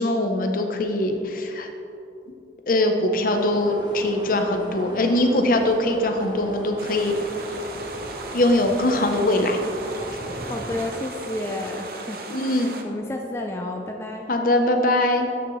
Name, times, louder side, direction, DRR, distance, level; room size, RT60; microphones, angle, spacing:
voice 1, 0.0-1.7 2.7-7.1 8.3-9.6 12.3-12.7 14.3-15.3, left 1 dB, 50° left, 4 dB, 0.7 m, -22 dB
sound 1, 3.3-11.0, equal, 25° right, 0.9 m, -37 dB
sound 2, 6.8-12.8, right 3 dB, 55° right, 0.7 m, -37 dB
voice 2, 10.4-12.2 12.8-14.3, left 1 dB, 15° left, 1 dB, 0.4 m, -31 dB
12.5 x 6.2 x 3.1 m, 2.7 s
head